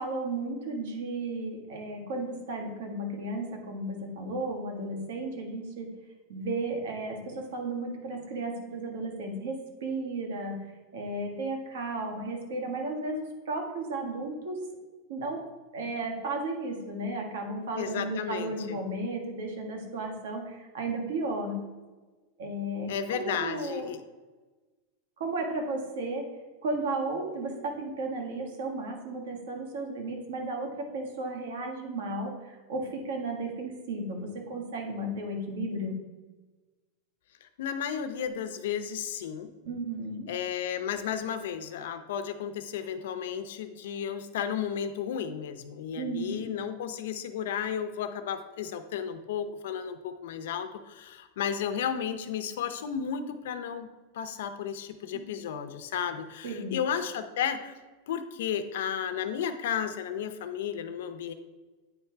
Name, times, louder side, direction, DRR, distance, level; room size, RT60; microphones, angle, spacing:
voice 1, 0.0-5.9 6.3-10.6 10.9-14.6 15.1-15.4 15.7-21.6 22.4-23.9 25.2-26.3 26.6-36.0 39.6-40.3 45.9-46.5 55.1-55.2 56.4-56.8, right 2 dB, 70° right, 2 dB, 1.5 m, -34 dB
voice 2, 17.8-18.8 22.9-24.0 37.4-39.5 40.3-53.9 54.1-57.7 58.1-61.3, left 8 dB, 70° left, 9 dB, 0.6 m, -33 dB
9.1 x 3.2 x 4.5 m, 1.3 s
supercardioid pair, 175°, 0 cm